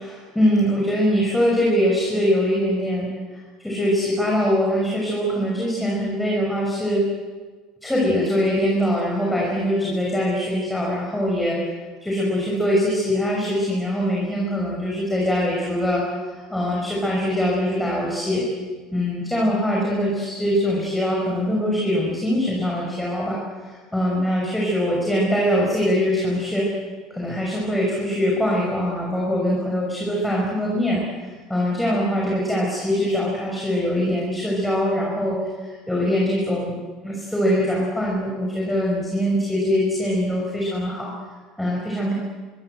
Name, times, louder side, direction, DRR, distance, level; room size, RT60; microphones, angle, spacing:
voice 1, 0.0-7.1 7.8-11.6 12.0-18.4 18.9-26.7 27.1-36.8 37.0-41.1 41.6-42.1, equal, 5° left, -3 dB, 5.7 m, -23 dB
26.0 x 24.5 x 7.9 m, 1.4 s
cardioid pair, 165°, 0 cm